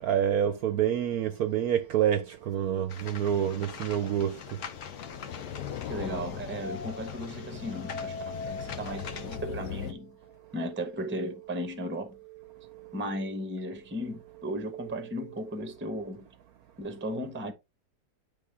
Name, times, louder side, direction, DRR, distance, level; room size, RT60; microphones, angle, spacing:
voice 1, 0.0-4.4, right 9 dB, 70° right, 0.9 m, -27 dB
sound 1, 1.1-15.6, right 1 dB, 25° left, 1.3 m, -47 dB
sound 2, 2.9-9.9, left 10 dB, 75° left, 1.2 m, -40 dB
sound 3, 2.9-9.4, left 6 dB, 55° left, 0.9 m, -46 dB
voice 2, 5.8-10.2 10.5-12.2 12.9-16.3 16.8-17.5, equal, 10° right, 0.6 m, -36 dB
9.9 x 3.5 x 3.4 m
omnidirectional pair, 1.9 m